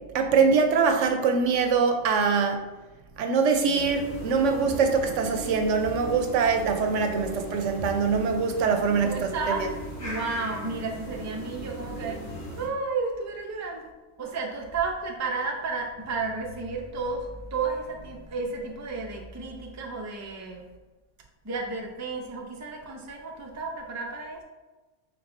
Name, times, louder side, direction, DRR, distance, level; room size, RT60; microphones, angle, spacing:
voice 1, 0.1-2.6 3.2-9.7, right 5 dB, 80° right, 5 dB, 0.9 m, -23 dB
sound 1, 3.7-12.7, right 1 dB, 70° left, 1.6 m, -38 dB
voice 2, 9.0-9.7 10.0-12.3 12.6-13.9 14.2-20.6 21.4-24.4, right 4 dB, 25° right, 0 dB, 0.3 m, -32 dB
4.6 x 3.9 x 2.6 m, 1.2 s
omnidirectional pair, 1.3 m